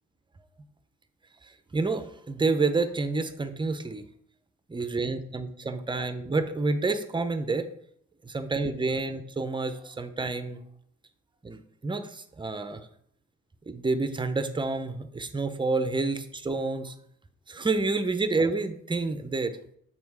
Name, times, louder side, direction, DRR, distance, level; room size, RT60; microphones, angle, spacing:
voice 1, 1.7-4.0 4.7-7.6 8.2-10.6 11.4-12.8 13.7-16.9 17.5-19.6, right 3 dB, 15° right, 10 dB, 0.7 m, -29 dB
7.3 x 3.3 x 4.7 m, 0.69 s
cardioid pair, 90°, 30 cm